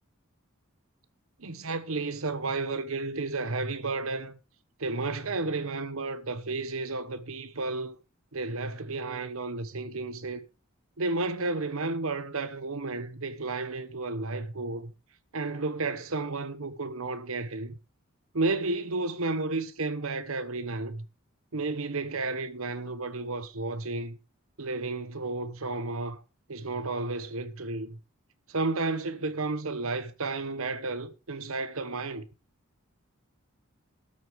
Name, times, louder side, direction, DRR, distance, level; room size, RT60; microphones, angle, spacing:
voice 1, 1.4-4.4 4.8-8.0 8.3-10.4 11.0-14.9 15.3-17.8 18.3-21.0 21.5-24.2 24.6-26.2 26.5-28.0 28.5-32.3, right 3 dB, 75° right, 1.2 m, -32 dB
13.0 x 7.9 x 5.0 m
head